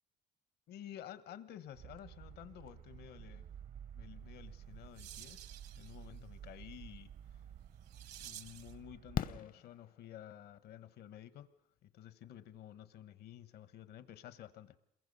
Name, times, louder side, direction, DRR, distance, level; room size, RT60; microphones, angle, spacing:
voice 1, 0.7-3.4 3.9-5.4 5.8-7.1 8.2-11.5 11.8-14.8, left 11 dB, 70° left, 13 dB, 1.1 m, -52 dB
sound 1, 1.7-9.4, right 9 dB, 55° right, 0.7 m, -52 dB
sound 2, 4.4-8.8, right 11 dB, 75° right, 1.2 m, -55 dB
Fireworks, 7.5-7.6 9.1-10.5 12.2-12.3 12.5-12.6, left 9 dB, 55° left, 0.8 m, -40 dB
27.5 x 22.5 x 5.4 m, 0.80 s
cardioid pair, 110°, 17 cm